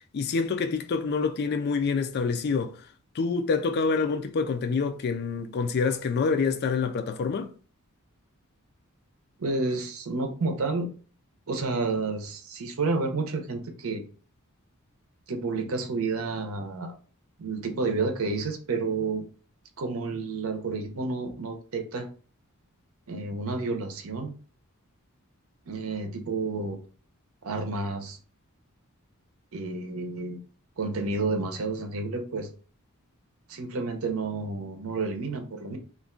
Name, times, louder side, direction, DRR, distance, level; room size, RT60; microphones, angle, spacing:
voice 1, 0.1-2.7 3.2-7.5, left 5 dB, 50° left, 0.4 m, -26 dB
voice 2, 9.4-10.9 11.5-14.0 15.3-16.9 17.4-19.2 19.8-22.1 23.1-24.3 25.7-26.8 27.4-28.2 29.5-30.4 30.8-32.5 33.5-35.8, right 3 dB, 70° right, 0.6 m, -30 dB
2.4 x 2.2 x 3.7 m
head